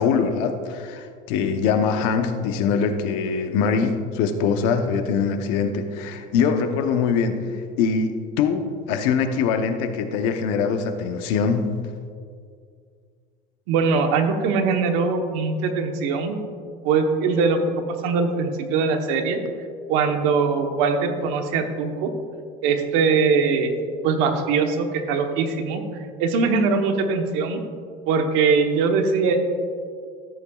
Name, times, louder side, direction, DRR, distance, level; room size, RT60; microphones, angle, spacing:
voice 1, 0.0-7.3 7.8-11.7, left 6 dB, 70° left, 7 dB, 0.9 m, -23 dB
voice 2, 13.7-16.4 16.8-19.4 19.9-22.1 22.6-23.8 24.0-27.6 28.1-29.4, right 5 dB, 70° right, 5 dB, 1.1 m, -22 dB
14.0 x 8.7 x 2.4 m, 2.1 s
cardioid pair, 180°, 20 cm